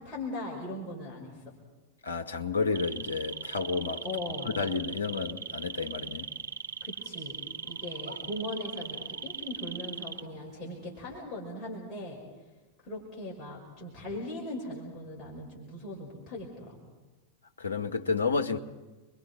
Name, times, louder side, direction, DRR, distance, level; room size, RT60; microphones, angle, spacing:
voice 1, 0.0-1.4 4.0-4.5 6.8-7.4 7.6-12.2 12.8-16.8, left 1 dB, 25° left, 5.7 m, -39 dB
voice 2, 2.0-4.0 4.6-6.3 17.6-18.6, left 4 dB, 70° left, 1.3 m, -31 dB
sound 1, 2.7-10.6 10.9-11.2, right 5 dB, 70° right, 0.9 m, -39 dB
30.0 x 22.5 x 4.5 m
figure-of-eight pair, 90°, 0 cm